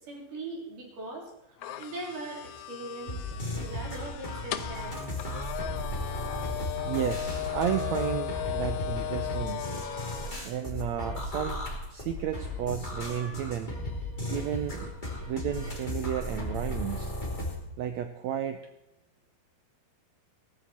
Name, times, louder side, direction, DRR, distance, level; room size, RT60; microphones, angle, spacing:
voice 1, 0.0-1.3 1.8-5.0, right 2 dB, 65° right, -1 dB, 5.1 m, -40 dB
sound 1, 1.6-10.4, left 13 dB, 75° left, 1.8 m, -37 dB
sound 2, 3.1-17.6, left 1 dB, 15° left, 2.5 m, -35 dB
voice 2, 6.9-9.7 10.4-11.6 11.9-13.7 14.3-14.9 15.2-17.1 17.8-18.6, right 10 dB, 85° right, 8 dB, 1.5 m, -32 dB
18.0 x 14.0 x 4.4 m, 0.90 s
omnidirectional pair, 4.1 m